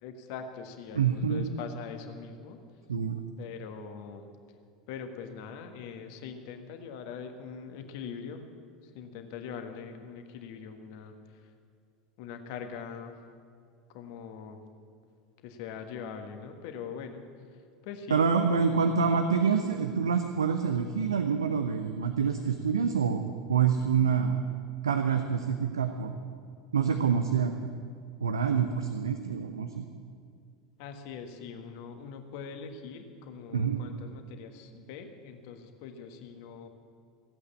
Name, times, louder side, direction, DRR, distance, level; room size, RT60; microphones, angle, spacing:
voice 1, 0.0-2.6 3.4-4.3 4.9-8.4 8.8-11.1 12.2-13.2 13.9-14.6 15.4-17.3 17.8-18.3 30.8-36.7, left 6 dB, 55° left, 6 dB, 1.4 m, -42 dB
voice 2, 0.9-1.5 2.9-3.2 18.1-23.2 23.5-24.4 24.8-26.1 26.7-27.7 28.2-29.8 33.5-33.8, right 6 dB, 75° right, 7 dB, 0.7 m, -26 dB
15.5 x 8.3 x 8.5 m, 2.2 s
figure-of-eight pair, 75°, 2 cm